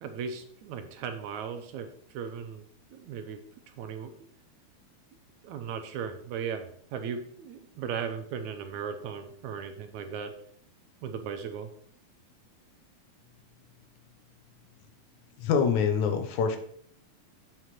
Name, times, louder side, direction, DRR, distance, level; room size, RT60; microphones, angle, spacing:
voice 1, 0.0-2.6 2.9-4.1 5.4-10.3 11.0-11.7, right 7 dB, 80° right, 6 dB, 2.1 m, -37 dB
voice 2, 15.4-16.6, left 6 dB, 75° left, 7 dB, 2.4 m, -25 dB
8.0 x 5.0 x 5.9 m, 0.62 s
omnidirectional pair, 3.4 m